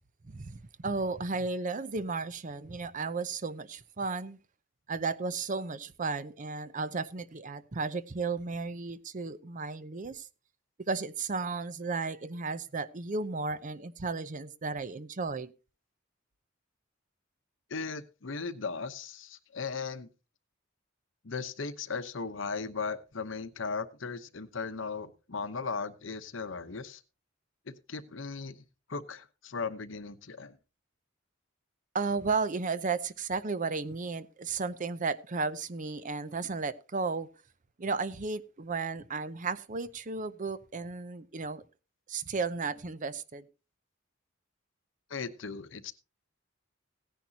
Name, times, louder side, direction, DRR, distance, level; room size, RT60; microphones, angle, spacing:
voice 1, 0.2-4.4 4.9-10.3 10.9-15.5 31.9-37.3 37.8-41.6 42.1-43.4, right 4 dB, 40° right, 0.6 m, -34 dB
voice 2, 17.7-20.1 21.2-27.0 27.7-28.6 28.9-30.6 45.1-45.9, left 4 dB, 70° left, 0.9 m, -37 dB
16.5 x 10.5 x 2.8 m
head